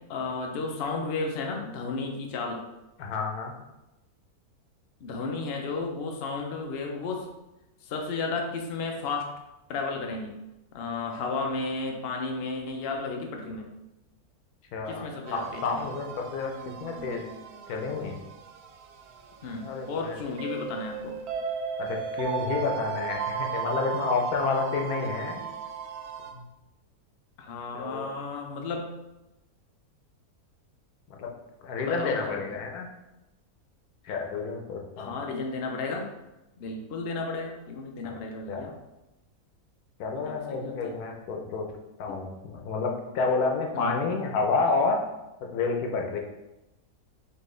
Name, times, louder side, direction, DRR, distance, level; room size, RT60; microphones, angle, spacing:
voice 1, 0.1-2.6 5.0-7.3 7.8-9.3 9.7-10.3 10.7-13.6 14.9-15.9 19.4-21.2 27.4-28.9 31.8-32.6 35.0-36.1 36.6-38.7 40.1-40.9 42.1-42.2 43.7-44.1, left 3 dB, 55° left, 2 dB, 0.7 m, -33 dB
voice 2, 3.0-3.5 14.7-16.5 16.8-17.2 17.7-18.2 19.6-20.2 21.8-25.4 26.3-26.5 27.7-28.1 31.1-31.3 31.6-32.9 34.0-35.2 38.0-38.2 38.5-38.7 40.0-41.7 42.0-45.0 45.4-46.2, left 4 dB, 85° left, 1 dB, 1.2 m, -30 dB
sound 1, 15.3-26.3, right 6 dB, 85° right, 1.1 m, -36 dB
4.4 x 2.9 x 3.2 m, 0.97 s
omnidirectional pair, 1.6 m